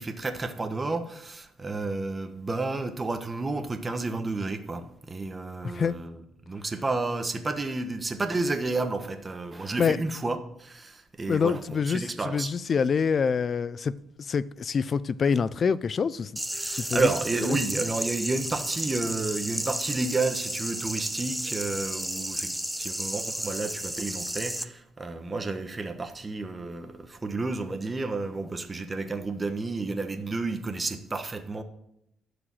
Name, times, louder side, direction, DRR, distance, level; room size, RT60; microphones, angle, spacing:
voice 1, 0.0-12.5 16.5-22.5 22.8-31.6, right 3 dB, 25° right, 1.3 m, -31 dB
voice 2, 11.3-13.9 14.2-16.3 16.7-17.1, left 6 dB, 45° left, 0.5 m, -26 dB
sound 1, 16.4-24.6, right 1 dB, 5° right, 0.7 m, -33 dB
12.0 x 5.1 x 7.6 m
cardioid pair, 90°, 0 cm